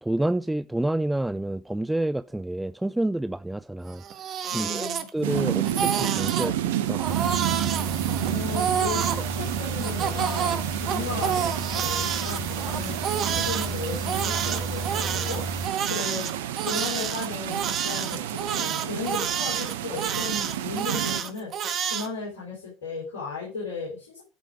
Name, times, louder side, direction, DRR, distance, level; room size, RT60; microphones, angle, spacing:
voice 1, 0.0-4.0 4.5-7.1, right 1 dB, 5° right, 0.4 m, -28 dB
Crying sobbing, 3.9-5.4 5.6-6.5 7.0-9.2 9.8-13.7 14.1-22.1, right 8 dB, 45° right, 1.5 m, -29 dB
voice 2, 4.5-5.1 8.3-16.3 16.7-24.2, left 4 dB, 75° left, 4.1 m, -35 dB
sound 1, 5.2-21.2, right 12 dB, 75° right, 0.8 m, -30 dB
sound 2, 7.1-15.7, right 2 dB, 30° right, 1.6 m, -34 dB
13.0 x 5.1 x 5.0 m
hypercardioid pair, 70°, 0 cm